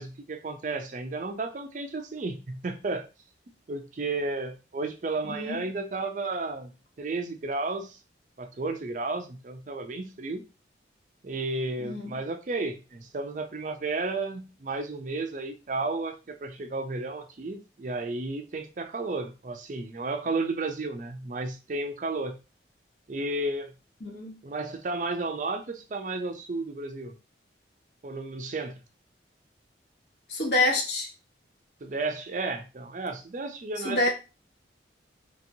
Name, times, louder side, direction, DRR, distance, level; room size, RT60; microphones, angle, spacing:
voice 1, 0.0-3.1 3.7-6.7 7.0-8.0 8.4-10.4 11.2-22.4 23.1-23.7 24.4-27.1 28.0-28.8 31.8-34.1, right 3 dB, 40° right, 0.4 m, -33 dB
voice 2, 5.3-5.6 11.8-12.1 24.0-24.4 30.3-31.1 33.8-34.1, left 2 dB, 65° left, 1.0 m, -27 dB
3.0 x 2.8 x 2.6 m
head